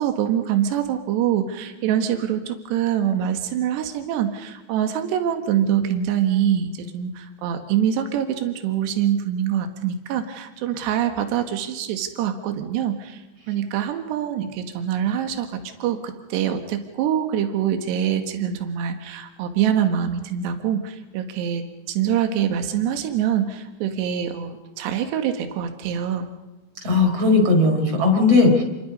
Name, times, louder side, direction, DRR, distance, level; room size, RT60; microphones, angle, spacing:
voice 1, 0.0-26.3, right 9 dB, 80° right, 6 dB, 3.7 m, -24 dB
voice 2, 26.8-28.6, left 3 dB, 35° right, 3 dB, 5.5 m, -17 dB
29.5 x 23.0 x 5.4 m, 1.1 s
omnidirectional pair, 4.9 m